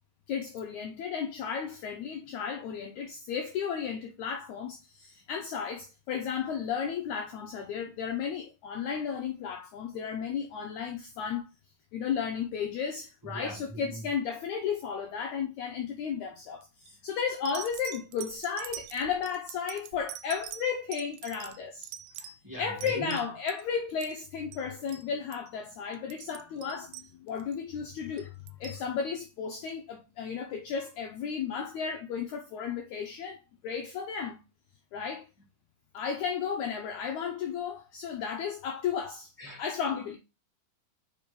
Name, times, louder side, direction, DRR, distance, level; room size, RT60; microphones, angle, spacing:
voice 1, 0.3-11.5 11.9-21.9 22.6-28.3 28.6-34.4 34.9-35.3 35.9-39.3 39.6-40.2, left 7 dB, 70° left, 1.9 m, -34 dB
voice 2, 13.2-14.0 22.2-23.2 28.2-28.3 38.3-38.4 39.4-39.6, right 1 dB, 10° right, 1.0 m, -40 dB
sound 1, 16.6-16.9 17.5-23.6 23.9-24.3 24.5-24.6 24.9-25.1 25.3-25.5 25.9-27.6 28.2-28.8 29.7-29.8, right 10 dB, 90° right, 2.3 m, -44 dB
5.3 x 4.9 x 5.1 m
omnidirectional pair, 4.0 m